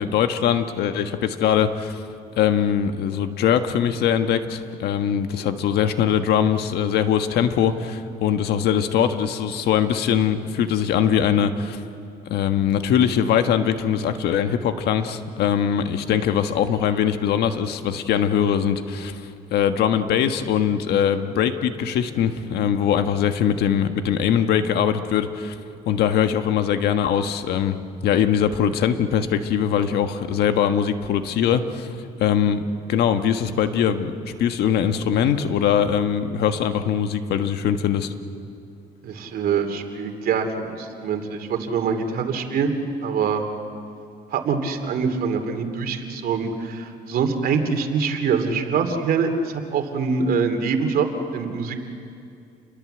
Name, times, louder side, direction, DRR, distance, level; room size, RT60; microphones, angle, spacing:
voice 1, 0.0-2.0 2.4-11.8 12.3-25.6 25.8-27.8 28.0-31.9 32.2-32.6 32.9-38.1, left 8 dB, 75° left, 8 dB, 1.5 m, -22 dB
voice 2, 39.0-43.4 44.3-51.1 51.3-51.8, right 5 dB, 60° right, 6 dB, 2.8 m, -24 dB
29.0 x 22.0 x 8.0 m, 2.5 s
cardioid pair, 110°, 17 cm